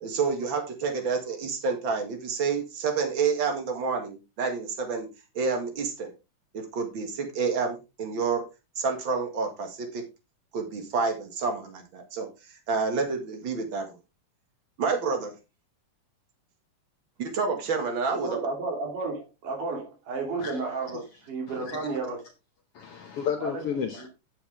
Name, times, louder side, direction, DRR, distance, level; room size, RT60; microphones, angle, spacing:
voice 1, 0.0-5.1 5.4-6.1 6.5-8.5 8.8-10.0 10.5-12.3 12.7-14.0 14.8-15.3 17.2-18.4, right 5 dB, 45° right, 2.2 m, -29 dB
voice 2, 18.1-22.2 23.4-23.6 24.0-24.1, right 3 dB, 85° right, 4.6 m, -32 dB
voice 3, 21.5-21.9 22.7-24.1, left 7 dB, 70° left, 1.5 m, -32 dB
10.0 x 7.2 x 3.5 m
omnidirectional pair, 3.6 m